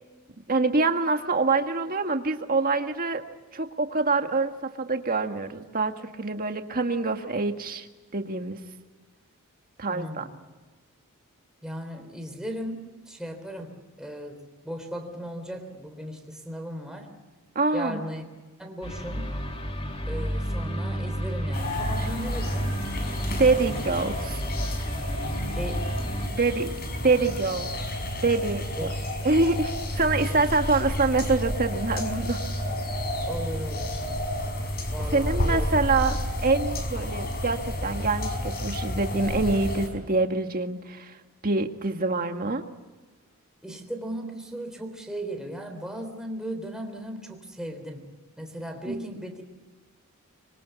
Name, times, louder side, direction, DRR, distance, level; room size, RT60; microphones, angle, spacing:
voice 1, 0.5-3.2 3.5-7.9 8.1-8.6 9.8-10.2 17.6-18.0 23.4-24.4 26.3-26.7 27.0-27.7 28.1-28.9 29.2-32.4 35.1-41.1 41.4-42.6 48.9-49.1, right 3 dB, 40° right, 6 dB, 1.8 m, -25 dB
voice 2, 9.9-10.3 11.6-17.1 17.7-18.3 18.6-19.3 20.1-22.8 25.4-25.9 28.8-28.9 30.4-30.5 33.3-34.0 34.9-35.8 43.6-48.1 48.4-49.4, right 1 dB, 5° right, 3 dB, 3.6 m, -37 dB
sound 1, 18.8-26.3, equal, 25° left, 2.7 m, -31 dB
sound 2, 21.5-39.9, left 1 dB, 45° left, 5.0 m, -31 dB
26.0 x 23.5 x 8.4 m, 1.3 s
head